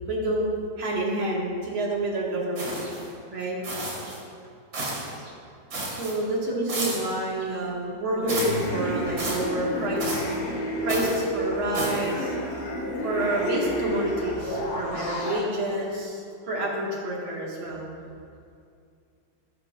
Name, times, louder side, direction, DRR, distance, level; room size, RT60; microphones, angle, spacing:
voice 1, 0.1-3.0 3.3-3.6 4.0-4.1 5.2-5.3 5.9-10.3 10.8-12.4 13.0-17.9, right 1 dB, 85° right, -3 dB, 2.9 m, -28 dB
sound 1, 2.6-3.1 3.6-4.2 4.7-5.2 5.7-6.2 6.7-7.1 8.3-8.7 9.2-9.5 10.0-10.4 10.9-11.2 11.7-12.1, right 2 dB, 65° right, 2.9 m, -32 dB
sound 2, 8.2-15.4, equal, 70° left, 3.3 m, -31 dB
16.0 x 11.0 x 2.6 m, 2.4 s
omnidirectional pair, 2.2 m